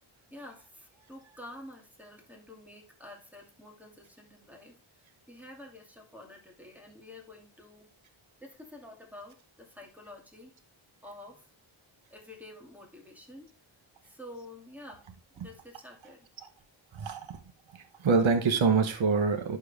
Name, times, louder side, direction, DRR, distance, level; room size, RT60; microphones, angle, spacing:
voice 1, 0.3-7.9 8.4-10.6 11.0-11.5 12.1-13.5 14.0-15.0 15.4-16.3, left 1 dB, 5° right, 1 dB, 2.5 m, -49 dB
voice 2, 16.9-17.4 17.7-19.6, right 4 dB, 65° right, 7 dB, 1.3 m, -26 dB
11.5 x 4.6 x 3.5 m, 0.35 s
cardioid pair, 75°, 49 cm